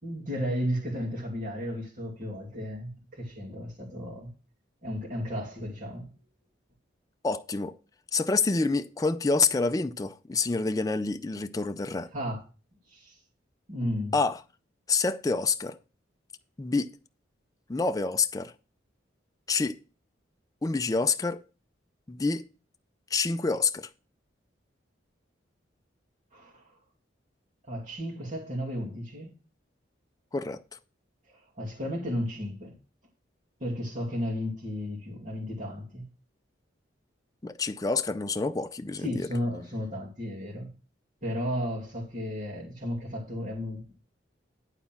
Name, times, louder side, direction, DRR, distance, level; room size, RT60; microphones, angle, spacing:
voice 1, 0.0-4.3 4.8-6.1 12.1-12.4 12.9-13.2 13.7-14.1 26.3-26.8 27.7-29.3 31.3-32.7 33.6-36.0 39.0-40.7 41.2-44.0, equal, 40° right, 2.4 m, -34 dB
voice 2, 7.2-7.7 8.1-12.1 14.1-14.4 14.9-15.8 16.6-16.9 17.7-18.5 19.5-19.8 20.6-21.4 22.1-22.4 23.1-23.9 30.3-30.6 37.4-39.3, left 4 dB, 20° left, 0.4 m, -27 dB
11.0 x 4.1 x 5.8 m
head